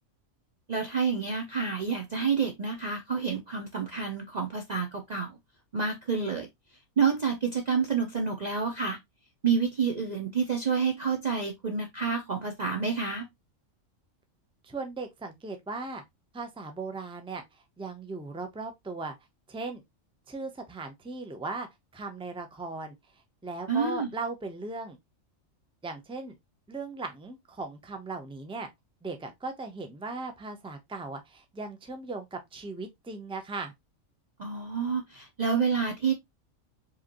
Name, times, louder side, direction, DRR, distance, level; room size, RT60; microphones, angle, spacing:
voice 1, 0.7-5.3 5.7-6.5 7.0-9.0 9.4-13.3 23.7-24.1 34.4-36.1, right 5 dB, 40° right, 0.7 m, -28 dB
voice 2, 14.6-16.0 16.3-17.4 17.8-19.1 19.5-19.8 20.3-21.7 21.9-23.0 23.4-25.0 25.8-26.3 26.7-28.7 29.0-33.7, right 3 dB, 5° right, 0.6 m, -37 dB
4.8 x 3.2 x 2.9 m
omnidirectional pair, 1.4 m